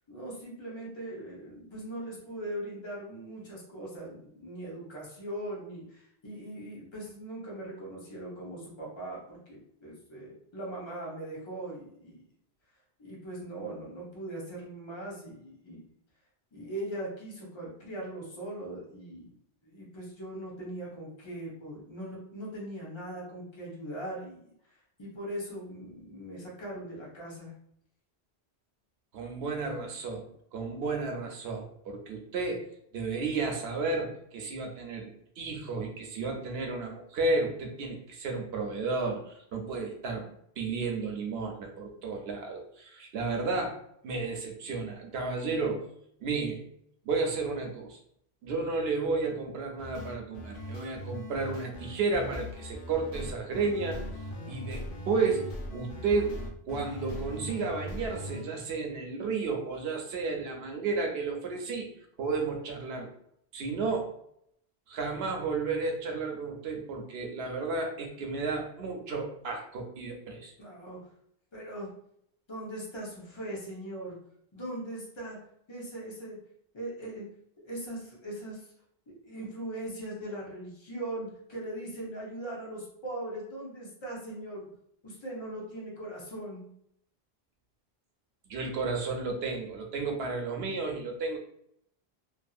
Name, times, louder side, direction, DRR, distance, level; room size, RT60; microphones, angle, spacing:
voice 1, 0.0-12.3 13.0-15.8 16.5-27.5 54.4-54.8 70.6-71.0 71.5-71.9 72.5-74.2 74.5-75.4 75.7-76.4 76.7-77.2 77.6-78.7 79.1-84.7 85.0-86.7, right 1 dB, 30° left, -4 dB, 0.8 m, -40 dB
voice 2, 29.1-32.6 32.9-43.7 44.0-45.8 46.2-46.6 47.0-48.0 48.4-54.0 54.5-55.4 55.7-56.4 56.7-61.9 62.2-63.1 63.5-64.1 64.9-70.5 88.5-91.4, right 4 dB, 75° right, 2 dB, 0.9 m, -32 dB
sound 1, 49.8-58.4, left 1 dB, 65° left, 0.7 m, -40 dB
2.7 x 2.6 x 2.4 m, 0.70 s
omnidirectional pair, 1.1 m